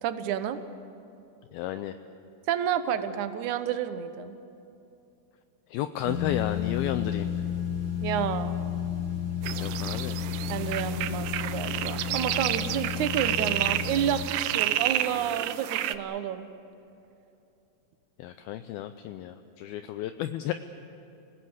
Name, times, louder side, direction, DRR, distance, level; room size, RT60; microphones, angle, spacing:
voice 1, 0.0-0.6 2.5-4.4 8.0-8.6 10.5-16.5, right 9 dB, 70° right, 10 dB, 1.9 m, -30 dB
voice 2, 1.5-2.0 5.7-7.3 9.6-10.2 10.6-10.8 18.2-20.5, left 12 dB, 80° left, 9 dB, 2.4 m, -32 dB
sound 1, 6.0-14.2, left 9 dB, 25° right, 3.6 m, -32 dB
sound 2, 9.4-16.0, right 13 dB, 90° right, 2.9 m, -30 dB
28.0 x 19.5 x 8.1 m, 2.7 s
omnidirectional pair, 4.7 m